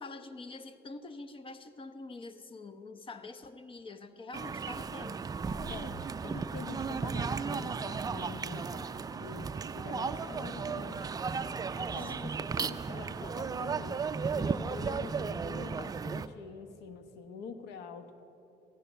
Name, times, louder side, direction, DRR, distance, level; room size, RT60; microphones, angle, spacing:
voice 1, 0.0-5.2 12.0-12.4, left 3 dB, 30° left, 11 dB, 0.8 m, -46 dB
sound 1, 4.3-16.3, right 5 dB, 20° right, 0.4 m, -35 dB
sound 2, 5.1-15.6, left 1 dB, 60° left, 1.4 m, -58 dB
voice 2, 5.7-8.9 9.2-11.1 11.7-18.2, left 5 dB, 80° left, 9 dB, 1.0 m, -45 dB
15.0 x 11.0 x 6.3 m, 2.9 s
cardioid pair, 110°, 17 cm